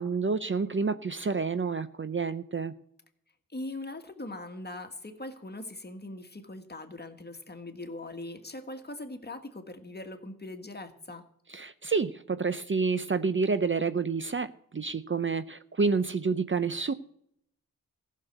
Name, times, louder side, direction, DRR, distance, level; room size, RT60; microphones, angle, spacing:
voice 1, 0.0-2.7 11.5-16.9, right 4 dB, 35° right, 13 dB, 0.6 m, -29 dB
voice 2, 3.5-11.2, left 2 dB, 30° left, 7 dB, 1.6 m, -41 dB
15.0 x 6.5 x 7.9 m, 0.69 s
wide cardioid pair, 80°, 33 cm